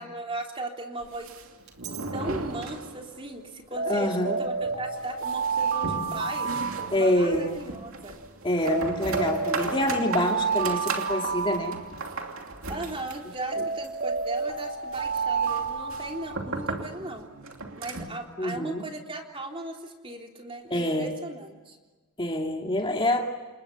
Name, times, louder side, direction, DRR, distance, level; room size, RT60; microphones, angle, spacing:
voice 1, 0.0-1.3 2.1-6.5 6.9-8.2 12.7-17.3 17.8-21.8, right 2 dB, 25° right, 2 dB, 3.5 m, -37 dB
sound 1, 1.0-3.4 3.6-3.7 4.1-4.2 4.6-18.2, right 3 dB, 65° right, 2.9 m, -37 dB
Alarm, 1.7-2.1 3.8-7.5 8.6-12.4 13.5-16.7, right 5 dB, 45° right, 3.1 m, -30 dB
voice 2, 3.8-4.4 6.9-7.6 8.4-11.8 13.6-13.7 18.4-18.8 20.7-21.1 22.2-23.3, left 1 dB, 20° left, 2 dB, 2.2 m, -26 dB
29.5 x 28.5 x 7.0 m, 1.3 s
head